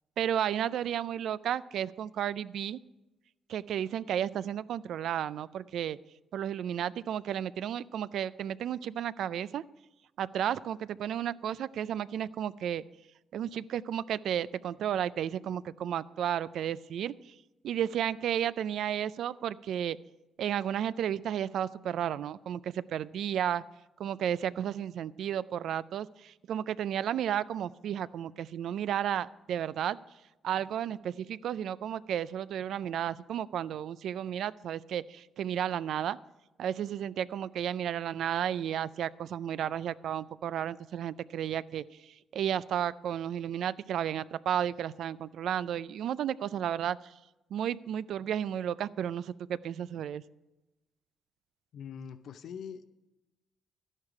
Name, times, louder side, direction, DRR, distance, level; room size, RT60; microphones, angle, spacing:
voice 1, 0.2-2.8 3.5-6.0 6.3-9.6 10.2-12.8 13.3-17.1 17.6-20.0 20.4-23.6 24.0-30.0 30.4-36.2 36.6-41.8 42.3-47.0 47.5-50.2, right 10 dB, 70° right, 17 dB, 0.3 m, -33 dB
voice 2, 51.7-52.8, left 7 dB, 65° left, 11 dB, 0.6 m, -42 dB
12.0 x 11.0 x 4.8 m, 1.0 s
cardioid pair, 90°, 0 cm